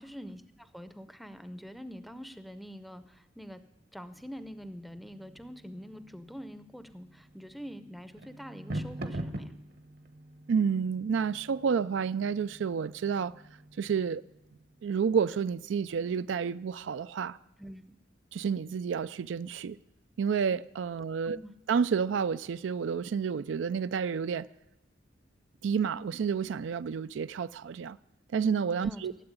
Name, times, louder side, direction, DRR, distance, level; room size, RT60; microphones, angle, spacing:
voice 1, 0.0-3.6 3.9-9.5 17.6-18.0 21.2-21.5 28.8-29.2, equal, ahead, 0.6 m, -45 dB
sound 1, 4.1-14.9, right 1 dB, 55° right, 0.9 m, -45 dB
voice 2, 10.5-13.3 13.8-14.2 14.8-17.4 18.3-19.8 20.2-21.4 21.7-24.5 25.6-28.0 28.3-29.1, right 6 dB, 85° right, 0.4 m, -30 dB
13.5 x 7.8 x 9.6 m
head